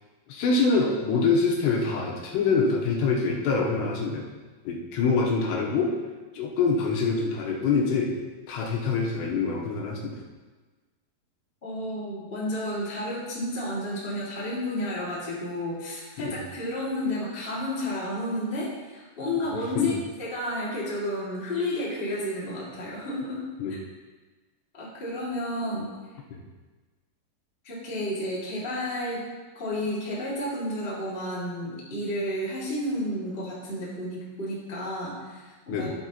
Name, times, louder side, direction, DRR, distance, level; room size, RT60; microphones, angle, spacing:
voice 1, 0.3-4.3 4.7-5.9 6.3-8.1 8.5-10.2 16.2-16.4 19.8-19.9 23.6-23.7 26.3-26.4 35.7-35.9, left 4 dB, 75° left, -2 dB, 3.0 m, -25 dB
voice 2, 11.6-19.9 20.2-23.4 24.7-25.9 27.6-29.2 29.5-35.9, left 1 dB, 30° left, -7 dB, 1.0 m, -31 dB
12.0 x 7.7 x 3.0 m, 1.3 s
omnidirectional pair, 5.3 m